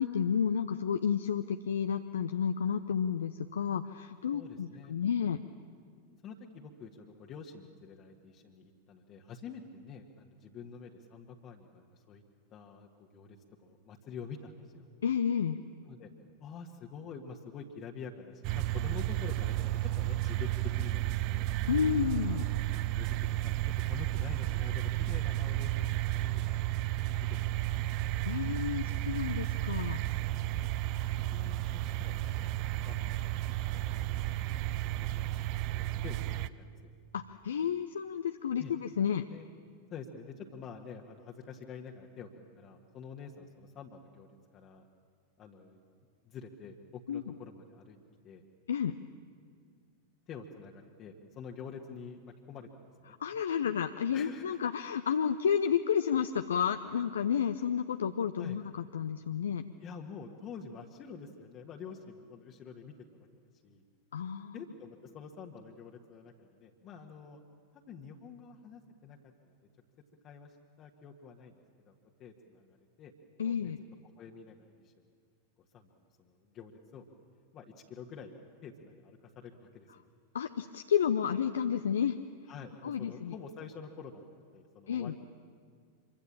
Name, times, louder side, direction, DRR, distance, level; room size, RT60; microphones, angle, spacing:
voice 1, 0.0-5.4 15.0-15.6 21.7-22.5 28.3-30.0 37.1-39.2 47.1-47.2 48.7-48.9 53.2-59.6 64.1-64.5 73.4-73.8 80.3-82.2 82.8-83.3 84.9-85.1, left 8 dB, 65° left, 9 dB, 0.6 m, -31 dB
voice 2, 4.3-4.9 6.2-12.2 12.5-14.9 15.8-16.1 16.4-21.5 22.3-22.5 22.9-27.3 27.8-27.9 30.5-30.7 31.3-33.3 33.6-34.0 34.4-36.9 38.6-38.7 39.3-39.5 39.9-42.3 42.6-44.9 45.4-45.8 46.2-48.0 48.2-48.5 50.3-52.7 53.0-53.2 54.1-54.4 58.4-58.6 59.8-63.3 63.6-63.8 64.5-67.4 67.9-69.5 70.2-71.6 71.8-73.1 73.4-73.7 74.2-74.6 74.8-74.9 75.7-75.9 76.2-77.0 77.5-78.3 78.6-80.1 82.5-84.2 84.5-85.2, left 6 dB, 30° left, 0 dB, 1.6 m, -48 dB
sound 1, 18.4-36.5, right 15 dB, 45° right, 0.6 m, -32 dB
25.5 x 23.5 x 7.4 m, 2.1 s
figure-of-eight pair, 90°, 0 cm